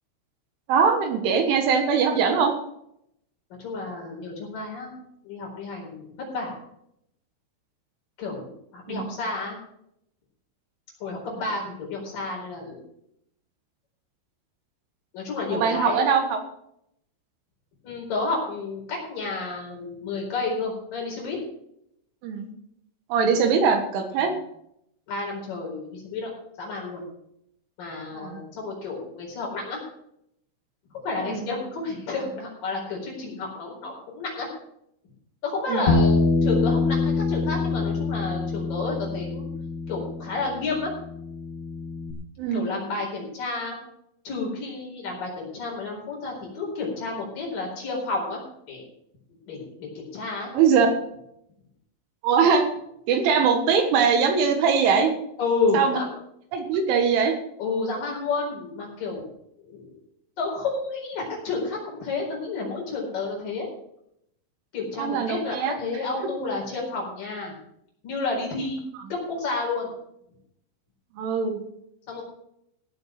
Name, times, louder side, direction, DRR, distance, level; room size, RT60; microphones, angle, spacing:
voice 1, 0.7-2.5 8.9-9.2 15.5-16.4 22.2-22.5 23.1-24.3 28.1-28.4 31.3-31.5 35.7-36.0 42.4-42.7 50.5-50.9 52.2-52.7 53.1-55.1 55.7-56.0 56.5-57.4 65.0-66.0 68.9-69.0 71.2-71.6, right 6 dB, 75° right, 5 dB, 3.8 m, -22 dB
voice 2, 3.6-5.0 5.2-6.6 8.2-9.6 11.0-12.8 15.1-16.1 17.8-21.4 24.2-24.3 25.1-26.3 26.6-27.0 27.8-29.8 30.9-34.5 35.4-39.5 39.9-40.9 42.5-43.7 44.2-48.4 48.7-48.9 49.5-50.5 55.4-56.1 57.6-59.2 59.6-60.0 60.4-63.7 64.7-67.5 68.0-68.8 69.1-69.9 72.1-72.2, left 3 dB, 45° left, -2 dB, 5.8 m, -30 dB
Bass guitar, 35.9-42.1, left 3 dB, 80° left, 1.5 m, -25 dB
16.0 x 7.8 x 5.9 m, 0.76 s
omnidirectional pair, 5.8 m